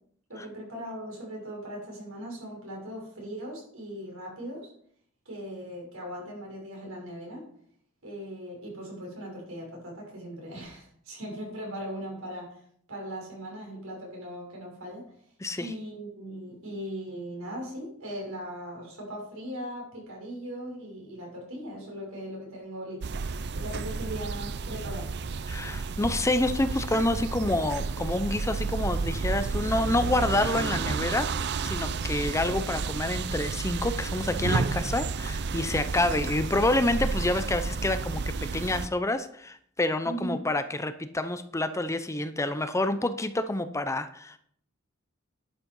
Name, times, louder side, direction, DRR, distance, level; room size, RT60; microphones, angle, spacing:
voice 1, 0.3-4.7 5.3-7.5 8.0-12.6 12.9-15.1 15.6-23.2 23.5-25.1 40.0-40.4, equal, 80° right, -2 dB, 6.2 m, -39 dB
voice 2, 15.4-15.7 25.5-38.2 38.5-44.4, left 2 dB, 15° left, 11 dB, 0.6 m, -28 dB
sound 1, 23.0-38.9, right 4 dB, 55° right, 0.5 m, -31 dB
11.0 x 8.7 x 5.4 m, 0.64 s
head